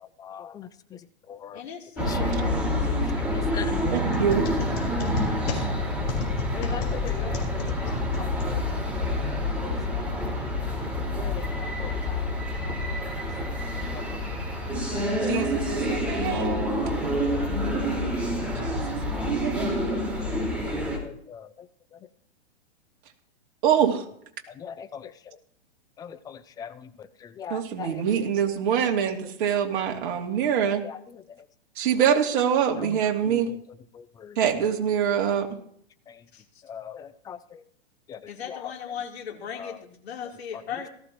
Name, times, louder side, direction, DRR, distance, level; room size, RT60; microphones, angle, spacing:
voice 1, 0.0-1.0 1.3-1.6 2.1-2.3 2.9-3.0 3.3-4.3 5.5-5.9 6.5-8.6 9.6-10.1 11.2-12.9 13.9-14.2 14.9-16.0 16.8-17.9 19.0-19.3 19.9-20.5 21.0-21.7 24.6-25.1 26.0-28.0 30.8-31.2 32.8-33.0 33.2-33.6 33.9-34.4 36.1-36.2 36.6-37.6 38.1-38.6 39.6-39.8, left 8 dB, 10° left, 12 dB, 0.4 m, -41 dB
voice 2, 1.5-3.1 36.3-36.4 38.3-40.9, left 7 dB, 70° left, 0 dB, 3.6 m, -37 dB
sound 1, 2.0-21.0, left 1 dB, 5° right, 4.5 m, -28 dB
sound 2, 3.9-9.1, left 3 dB, 40° left, 4.2 m, -34 dB
voice 3, 3.9-4.4 15.3-16.6 18.6-19.7 23.6-24.0 27.5-30.8 31.8-33.5 34.4-35.5, right 8 dB, 50° right, 2 dB, 2.5 m, -25 dB
18.0 x 14.5 x 3.0 m, 0.67 s
hypercardioid pair, 125°, 33 cm